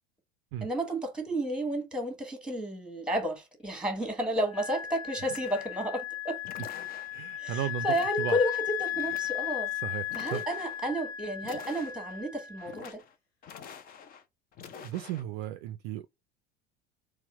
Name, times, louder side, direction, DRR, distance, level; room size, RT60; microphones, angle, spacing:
voice 1, 0.6-6.4 7.4-9.7 10.1-13.0, equal, 5° right, 1.3 m, -32 dB
Wind instrument woodwind instrument, 4.5-12.8, left 13 dB, 75° left, 0.8 m, -36 dB
sound 1, 5.3-5.9 6.4-7.3 7.9-8.5 8.8-9.6 10.1-10.8 11.4-12.2 12.6-13.1 13.4-14.2 14.5-15.2, left 7 dB, 30° left, 0.6 m, -47 dB
voice 2, 7.1-8.4 9.8-10.0 10.3-10.4 14.8-16.1, right 12 dB, 45° right, 0.5 m, -35 dB
4.2 x 2.3 x 4.6 m
figure-of-eight pair, 70°, 32 cm